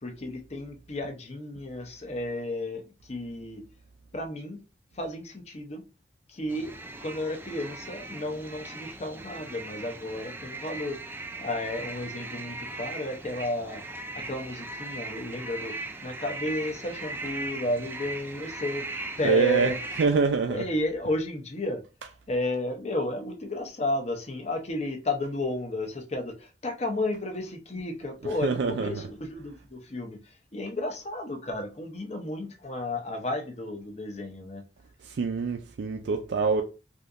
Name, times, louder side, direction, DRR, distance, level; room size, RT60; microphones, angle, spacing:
voice 1, 0.0-3.6 4.1-4.6 4.9-5.8 6.3-6.7 7.0-11.0 11.4-13.8 14.1-18.8 19.2-19.7 20.5-21.8 22.3-34.6, left 1 dB, 40° left, 0.7 m, -32 dB
sound 1, 6.5-20.1, right 2 dB, 10° right, 0.3 m, -39 dB
voice 2, 19.2-20.7 22.0-22.1 28.2-29.0 35.0-36.6, right 4 dB, 85° right, 0.4 m, -26 dB
3.5 x 2.7 x 2.5 m
head